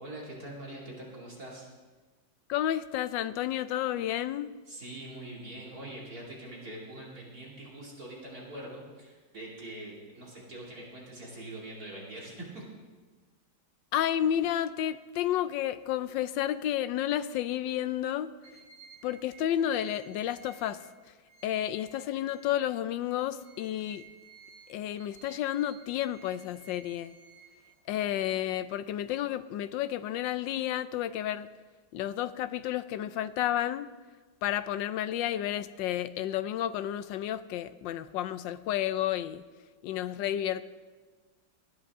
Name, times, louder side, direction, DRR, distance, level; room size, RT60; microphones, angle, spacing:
voice 1, 0.0-1.7 4.7-12.6, right 1 dB, 45° right, -4 dB, 3.1 m, -43 dB
voice 2, 2.5-4.5 13.9-18.3 19.0-20.8 21.4-24.0 24.7-27.1 27.9-31.5 31.9-33.9 34.4-39.4 39.8-40.6, left 11 dB, 75° left, 13 dB, 1.2 m, -31 dB
sound 1, 18.4-22.8 23.2-28.1, right 6 dB, 80° right, 3.1 m, -56 dB
19.5 x 12.5 x 3.6 m, 1.4 s
omnidirectional pair, 2.2 m